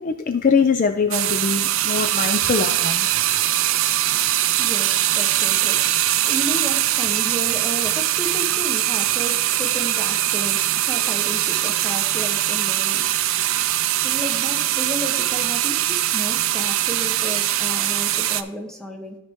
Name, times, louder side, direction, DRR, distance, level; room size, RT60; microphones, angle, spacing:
voice 1, 0.0-3.1, left 5 dB, 35° left, 8 dB, 0.4 m, -22 dB
sound 1, 1.1-18.4, right 13 dB, 65° right, 0.4 m, -22 dB
voice 2, 4.0-19.2, right 1 dB, ahead, 1 dB, 0.9 m, -33 dB
13.0 x 4.5 x 3.5 m, 0.91 s
head